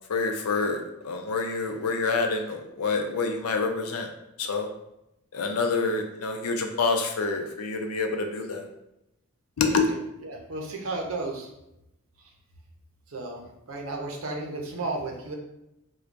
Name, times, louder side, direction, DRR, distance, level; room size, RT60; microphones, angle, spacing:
voice 1, 0.1-4.1 4.4-4.7 5.3-8.6 9.6-9.8, left 4 dB, 90° left, 4 dB, 0.5 m, -27 dB
voice 2, 10.2-11.5 13.1-13.4 13.7-15.3, right 2 dB, 65° right, 0 dB, 0.7 m, -33 dB
4.5 x 2.3 x 2.5 m, 0.85 s
head